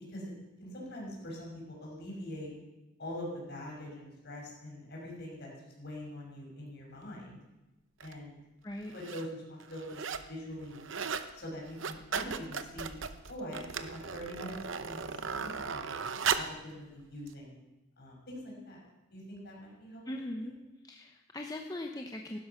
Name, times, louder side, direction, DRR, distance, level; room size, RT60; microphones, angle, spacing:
voice 1, 0.6-2.5 3.0-7.4 8.0-8.4 8.9-10.9 11.3-13.0 13.3-14.6 14.8-16.0 16.3-17.6 18.0-18.8 19.1-20.0 20.3-20.6, left 1 dB, 50° left, -2 dB, 5.9 m, -43 dB
sound 1, 8.0-8.1 8.8-9.3 9.6-10.3 10.6-11.3 11.6-16.6 17.3-17.4, right 6 dB, 65° right, 0.8 m, -36 dB
voice 2, 20.1-20.5 20.8-22.4, left 1 dB, 20° left, 2 dB, 0.8 m, -40 dB
15.5 x 12.0 x 5.7 m, 1.0 s
head